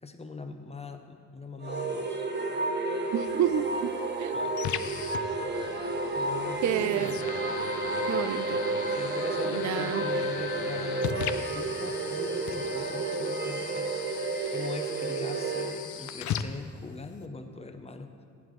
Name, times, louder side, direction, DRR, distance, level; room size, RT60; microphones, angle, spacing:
voice 1, 0.0-2.3 4.3-4.6 5.8-7.2 8.9-18.2, left 3 dB, 20° left, 6 dB, 0.6 m, -41 dB
sound 1, 1.6-15.8, right 2 dB, 35° right, 0.8 m, -31 dB
voice 2, 3.1-4.4 6.6-7.1 8.1-8.6 9.5-10.0, right 10 dB, 60° right, 11 dB, 0.4 m, -30 dB
sound 2, 3.3-17.3, left 9 dB, 65° left, 0.5 m, -39 dB
13.5 x 8.8 x 3.1 m, 2.2 s
cardioid pair, 115°, 32 cm